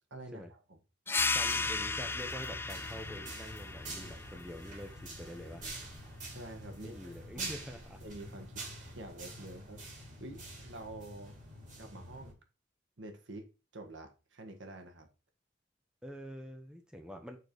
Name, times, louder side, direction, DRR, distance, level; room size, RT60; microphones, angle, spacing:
voice 1, 0.1-0.8 6.3-7.5 8.0-11.3 11.8-12.4 13.0-15.1, right 2 dB, 85° right, 1.6 m, -48 dB
sound 1, 1.1-6.2, left 4 dB, 10° left, 0.4 m, -36 dB
voice 2, 1.3-5.7 6.8-8.0 16.0-17.4, equal, 5° right, 1.2 m, -46 dB
sound 2, 1.5-12.3, right 2 dB, 45° right, 3.1 m, -46 dB
6.5 x 4.4 x 5.2 m
head